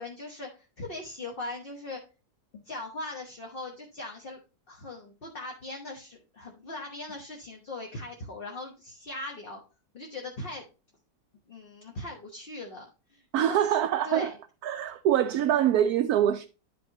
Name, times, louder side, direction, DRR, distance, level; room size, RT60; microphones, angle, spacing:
voice 1, 0.0-2.0 2.5-4.4 4.7-9.6 9.9-10.7 11.5-13.7 14.0-14.4, left 2 dB, 35° left, 1.1 m, -40 dB
voice 2, 13.3-14.3 14.6-16.5, right 10 dB, 70° right, 1.0 m, -24 dB
10.5 x 5.4 x 2.9 m
omnidirectional pair, 1.8 m